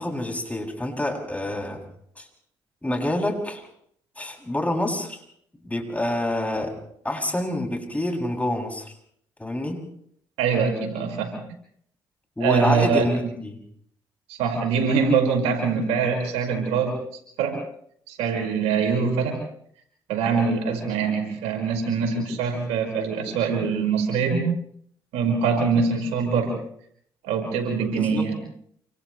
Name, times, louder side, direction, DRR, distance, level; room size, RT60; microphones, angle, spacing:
voice 1, 0.0-1.8 2.2-2.3 2.8-3.6 4.2-5.2 5.6-6.8 7.0-8.9 9.4-9.8 12.4-13.6 27.9-28.3, left 1 dB, 15° left, 1 dB, 7.3 m, -27 dB
voice 2, 10.4-11.3 12.4-13.3 14.3-16.9 17.4-17.6 18.1-19.4 20.1-24.4 25.1-26.5 27.2-28.4, right 5 dB, 85° right, 2 dB, 5.5 m, -23 dB
28.5 x 27.5 x 3.3 m, 0.65 s
supercardioid pair, 50°, 10 cm